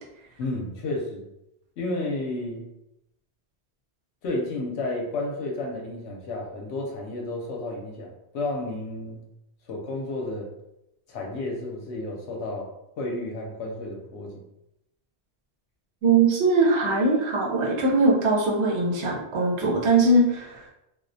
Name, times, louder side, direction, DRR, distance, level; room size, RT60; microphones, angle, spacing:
voice 1, 0.4-1.3 1.8-2.7 4.2-9.2 9.7-10.5 11.1-12.7 13.0-14.4, left 2 dB, 80° left, 0 dB, 0.9 m, -32 dB
voice 2, 16.0-20.7, right 3 dB, 85° right, -2 dB, 0.9 m, -21 dB
2.3 x 2.1 x 2.5 m, 0.86 s
omnidirectional pair, 1.1 m